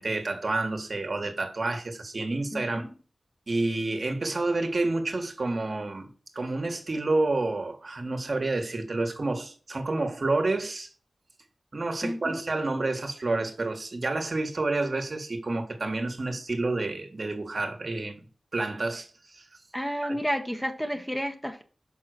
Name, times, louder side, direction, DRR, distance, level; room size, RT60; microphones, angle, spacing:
voice 1, 0.0-2.8 3.5-6.1 6.3-10.9 11.7-18.2 18.5-19.4 20.0-20.2, right 2 dB, 55° right, 1.5 m, -29 dB
voice 2, 2.5-2.9 12.0-12.4 19.7-21.6, equal, 5° left, 1.0 m, -31 dB
5.7 x 5.6 x 6.5 m
wide cardioid pair, 75°, 0 cm